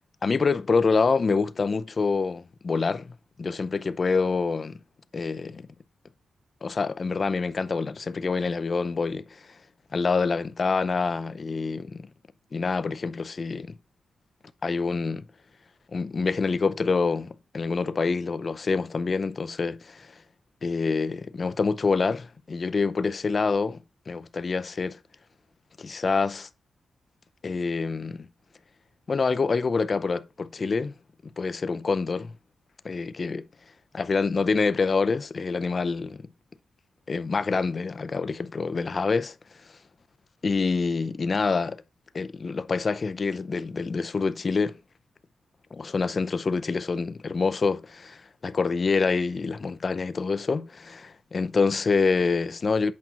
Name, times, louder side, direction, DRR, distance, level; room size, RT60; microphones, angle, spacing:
voice 1, 0.2-4.8 5.1-5.7 6.6-9.5 9.9-12.1 12.5-13.8 14.6-15.2 15.9-20.1 20.6-25.0 25.8-26.5 27.4-28.3 29.1-30.9 31.4-32.3 32.8-33.4 33.9-36.3 37.1-39.3 40.4-41.8 42.1-44.8 45.7-52.9, left 4 dB, 35° left, 0.5 m, -26 dB
8.5 x 5.9 x 3.9 m
wide cardioid pair, 150°, 0 cm